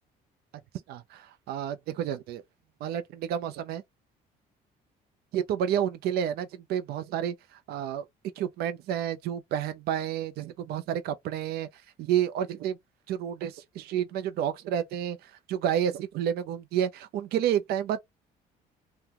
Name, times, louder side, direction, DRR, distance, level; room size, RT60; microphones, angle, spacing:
voice 1, 0.9-2.4 2.8-3.8 5.3-8.1 8.4-12.8 13.1-18.0, right 9 dB, 70° right, 0.5 m, -30 dB
2.8 x 2.2 x 3.5 m
cardioid pair, 110°, 17 cm